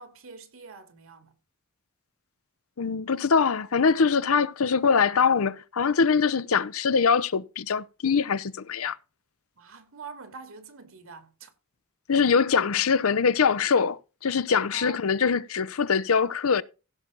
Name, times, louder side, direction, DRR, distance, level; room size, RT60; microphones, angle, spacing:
voice 1, 0.0-1.3 9.6-11.5 14.7-15.1, right 5 dB, 70° right, 2.4 m, -45 dB
voice 2, 2.8-9.0 12.1-16.6, left 5 dB, 75° left, 0.7 m, -23 dB
16.0 x 6.0 x 3.9 m
head